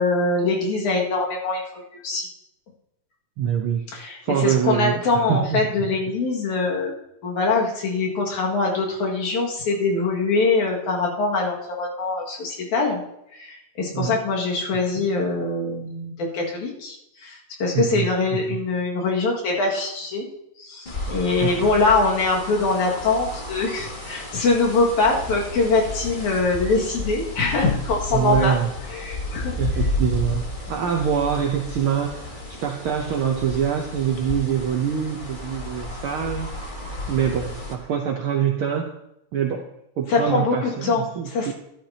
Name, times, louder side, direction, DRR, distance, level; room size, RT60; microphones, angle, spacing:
voice 1, 0.0-2.3 3.9-6.9 7.2-13.0 13.3-20.3 20.6-28.6 28.9-29.5 40.1-41.5, left 3 dB, 80° left, -2 dB, 3.4 m, -23 dB
voice 2, 3.4-5.9 13.9-14.2 15.0-15.1 17.7-18.1 18.3-18.6 21.4-21.7 28.1-28.7 29.6-36.7 37.1-38.9 39.3-39.6 40.0-41.5, right 8 dB, 70° right, 2 dB, 1.2 m, -25 dB
sound 1, 20.8-37.7, left 2 dB, 60° left, 0.5 m, -32 dB
13.0 x 11.5 x 2.8 m, 0.82 s
omnidirectional pair, 3.3 m